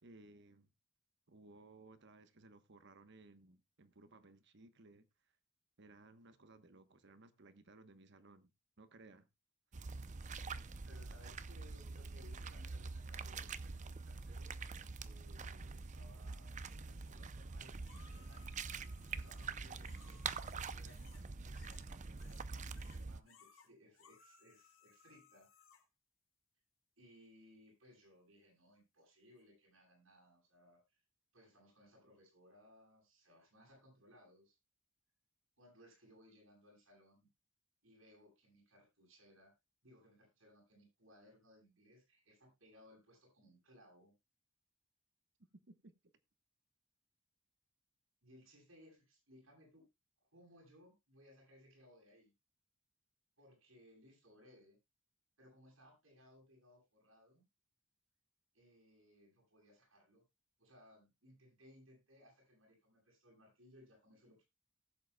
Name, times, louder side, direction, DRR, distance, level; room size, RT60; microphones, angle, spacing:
voice 1, 0.0-0.7 1.3-5.1 5.8-8.5 8.8-9.3 45.7-45.9, right 2 dB, 60° right, 1.1 m, -60 dB
sound 1, 9.7-23.2, right 4 dB, 40° right, 0.6 m, -45 dB
voice 2, 10.8-14.5 14.9-18.6 19.1-25.6 27.0-31.0 31.3-34.6 35.6-37.3 37.8-39.5 39.8-44.1 48.2-49.9 50.3-52.3 53.4-54.8 55.4-57.4 58.5-60.2 60.6-64.4, left 1 dB, 90° right, 8.0 m, -64 dB
sound 2, 17.9-21.3 21.5-22.5 22.7-25.8 29.4-29.5, left 7 dB, 90° left, 2.4 m, -65 dB
18.5 x 7.9 x 2.3 m
head